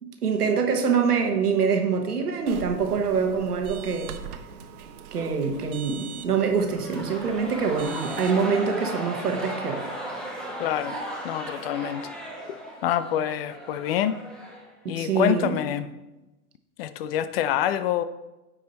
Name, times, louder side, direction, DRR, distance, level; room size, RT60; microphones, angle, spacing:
voice 1, 0.0-4.1 5.1-10.0 14.8-15.6, right 5 dB, 90° right, 4 dB, 1.4 m, -25 dB
sound 1, 2.5-8.5, right 7 dB, 70° right, 0.9 m, -41 dB
sound 2, 6.6-15.1, right 1 dB, ahead, 1.3 m, -36 dB
voice 2, 10.6-11.0 11.2-12.1 12.8-14.2 14.9-15.9 16.8-18.0, left 10 dB, 45° left, 13 dB, 0.5 m, -26 dB
9.1 x 4.9 x 4.1 m, 1.0 s
hypercardioid pair, 115°, 45 cm